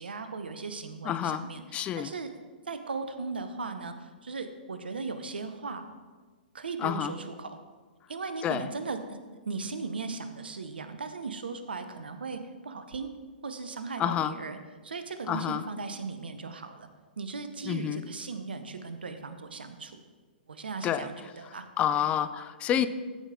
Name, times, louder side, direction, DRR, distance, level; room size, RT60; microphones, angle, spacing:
voice 1, 0.0-1.6 2.0-2.3 2.7-5.8 6.5-7.6 8.1-9.2 9.5-13.1 13.4-14.6 14.8-16.9 17.2-20.0 20.5-21.7 22.0-22.1 22.7-22.9, right 4 dB, 75° right, 9 dB, 0.8 m, -37 dB
voice 2, 1.0-1.5 1.7-2.1 6.8-7.1 8.4-8.7 14.0-14.4 15.3-15.6 17.6-18.0 20.8-21.1 21.5-22.9, left 10 dB, 20° left, 13 dB, 0.3 m, -29 dB
14.5 x 5.0 x 3.7 m, 1.4 s
figure-of-eight pair, 115°, 5 cm